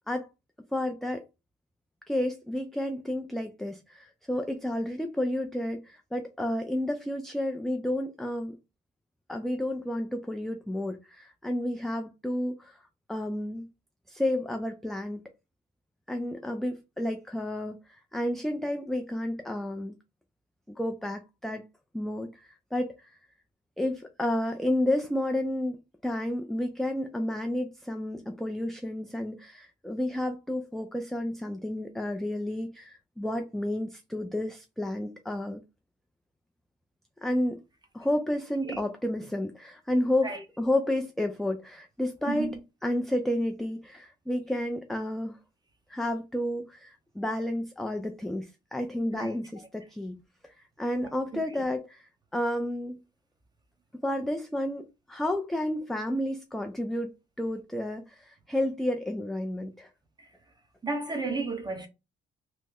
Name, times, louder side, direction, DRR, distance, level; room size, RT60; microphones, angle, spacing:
voice 1, 0.7-1.2 2.1-8.6 9.3-12.8 13.1-13.7 14.1-15.2 16.1-20.0 20.7-21.6 21.9-23.2 23.8-35.6 37.2-37.6 37.9-42.5 42.8-45.4 45.9-53.0 54.0-59.9, left 1 dB, ahead, 0.4 m, -31 dB
voice 2, 51.3-51.6 60.8-61.9, right 3 dB, 20° right, 0.9 m, -33 dB
3.1 x 2.0 x 3.5 m
cardioid pair, 90°, 20 cm